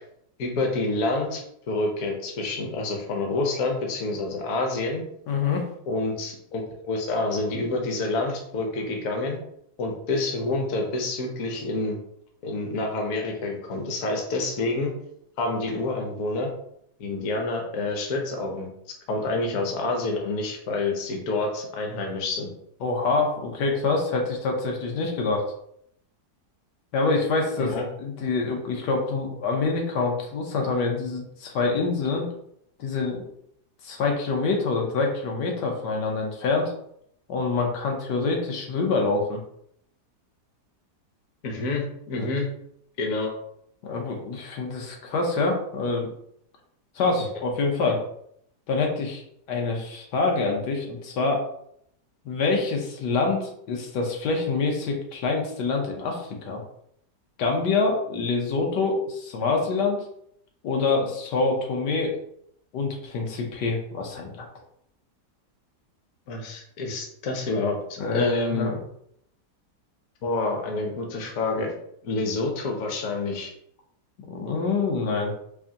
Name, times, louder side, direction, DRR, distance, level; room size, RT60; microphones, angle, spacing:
voice 1, 0.4-1.4 1.7-5.0 5.9-9.4 9.8-12.0 12.4-14.9 15.4-16.5 17.0-18.7 19.1-22.5 27.6-27.8 41.4-42.5 43.0-43.3 66.3-67.8 68.1-68.7 70.2-71.7 72.0-73.5, left 2 dB, 60° left, 2 dB, 1.1 m, -28 dB
voice 2, 5.3-5.6 22.8-25.4 26.9-27.7 28.0-32.3 32.8-33.3 33.8-36.7 37.3-39.4 42.2-42.3 43.8-46.1 46.9-48.0 48.7-49.2 49.5-51.4 52.2-56.6 57.4-60.0 60.6-62.2 62.7-64.5 68.0-68.8 74.3-75.3, left 3 dB, 85° left, 1 dB, 1.4 m, -26 dB
4.8 x 2.6 x 2.8 m, 0.71 s
omnidirectional pair, 1.8 m